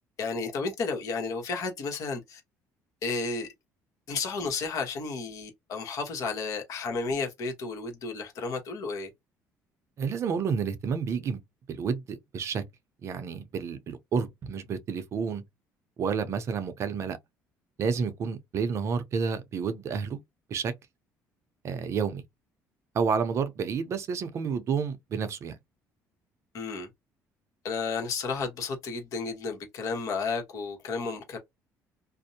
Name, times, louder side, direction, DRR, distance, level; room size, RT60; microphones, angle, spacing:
voice 1, 0.2-2.4 3.0-3.5 4.1-9.1 26.5-26.9 27.6-31.4, left 4 dB, 60° left, 1.0 m, -32 dB
voice 2, 10.0-11.4 11.7-12.6 13.0-15.4 16.0-17.2 17.8-20.2 20.5-20.7 21.6-22.2 22.9-25.6, right 6 dB, 45° right, 0.6 m, -30 dB
2.6 x 2.0 x 2.7 m
cardioid pair, 120°, 6 cm